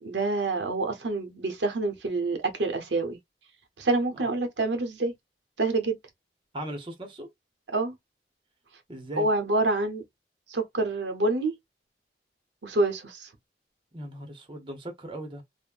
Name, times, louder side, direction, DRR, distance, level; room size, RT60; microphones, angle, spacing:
voice 1, 0.0-3.2 3.8-5.1 5.6-6.0 7.7-8.0 9.2-10.0 10.5-11.5 12.6-13.3, right 2 dB, 85° right, 0.8 m, -27 dB
voice 2, 6.5-7.3 8.9-9.3 13.9-15.4, right 1 dB, 30° right, 0.7 m, -38 dB
3.5 x 2.1 x 2.4 m
head